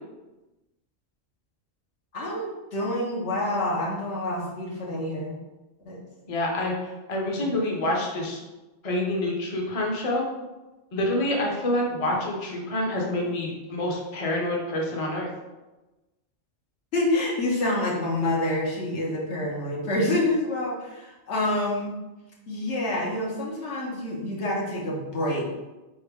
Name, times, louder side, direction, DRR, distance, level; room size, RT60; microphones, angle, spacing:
voice 1, 2.1-5.4 5.8-6.0 7.4-7.5 16.9-21.9 22.5-25.4, left 1 dB, 75° left, -3 dB, 1.4 m, -27 dB
voice 2, 6.3-8.4 8.8-10.2 10.9-15.3, left 1 dB, 35° left, -1 dB, 0.7 m, -27 dB
4.1 x 3.6 x 3.5 m, 1.1 s
omnidirectional pair, 1.2 m